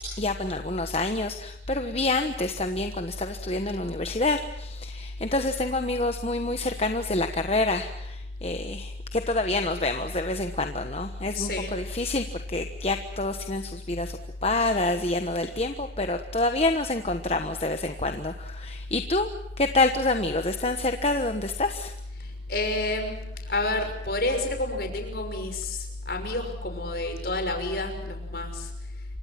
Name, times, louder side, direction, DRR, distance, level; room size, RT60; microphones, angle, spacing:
voice 1, 0.2-19.3 19.6-21.9, left 2 dB, 35° left, 7 dB, 1.3 m, -27 dB
voice 2, 11.3-11.8 22.2-23.2 23.5-28.7, left 2 dB, 55° left, 5 dB, 6.0 m, -29 dB
28.5 x 25.0 x 6.0 m, 0.82 s
head